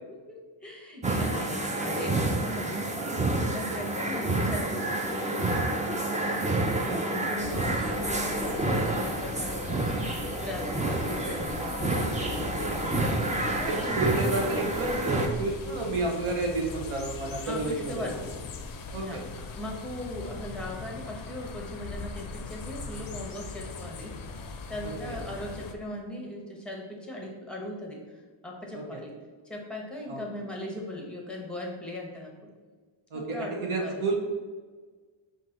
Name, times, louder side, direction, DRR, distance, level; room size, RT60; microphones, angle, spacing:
voice 1, 0.1-2.9 3.4-5.9 6.6-13.0 13.5-14.7 17.4-18.4 18.9-24.2 24.7-29.1 29.4-32.5 33.1-34.0, left 1 dB, ahead, -1 dB, 0.9 m, -39 dB
sound 1, 1.0-15.3, right 2 dB, 15° right, 0.4 m, -29 dB
voice 2, 6.6-7.0 13.7-18.1 18.9-19.2 24.8-25.2 28.7-29.0 30.1-30.2 33.1-34.1, right 3 dB, 75° right, 0 dB, 0.8 m, -31 dB
sound 2, 7.4-25.7, left 4 dB, 45° left, 0.5 m, -40 dB
5.6 x 2.6 x 3.7 m, 1.5 s
wide cardioid pair, 130°, 49 cm